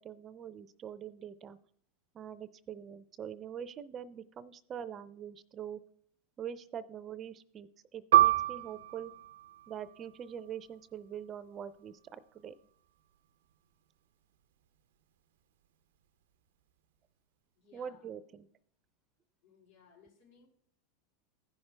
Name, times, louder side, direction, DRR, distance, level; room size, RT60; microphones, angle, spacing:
voice 1, 0.0-1.6 2.1-5.8 6.4-9.1 9.7-12.5 17.7-18.5, right 8 dB, 30° right, 15 dB, 0.5 m, -44 dB
Piano, 8.1-13.2 13.5-13.7 14.4-14.8, right 13 dB, 85° right, 0.5 m, -30 dB
voice 2, 17.6-18.0 19.4-20.5, left 6 dB, 80° left, -2 dB, 3.6 m, -62 dB
15.0 x 5.8 x 3.3 m, 0.65 s
supercardioid pair, 115°, 0 cm